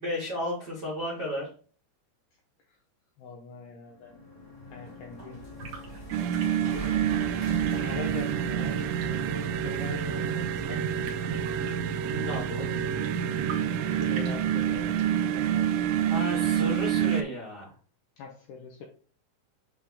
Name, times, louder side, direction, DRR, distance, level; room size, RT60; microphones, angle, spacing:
voice 1, 0.0-1.5 12.1-12.7 16.1-17.7, left 1 dB, 40° right, -5 dB, 1.4 m, -33 dB
voice 2, 3.2-4.2 4.7-5.5 6.6-7.0 7.7-11.1 12.5-15.0 15.3-15.8 16.6-16.7 18.2-18.9, left 4 dB, 80° left, 1 dB, 2.2 m, -43 dB
sound 1, 3.9-9.4, right 2 dB, 50° left, 0.4 m, -43 dB
sound 2, 5.6-16.9, right 5 dB, 65° right, 1.7 m, -49 dB
sound 3, 6.1-17.2, right 9 dB, 85° right, 2.8 m, -27 dB
8.1 x 3.4 x 3.6 m, 0.41 s
omnidirectional pair, 5.2 m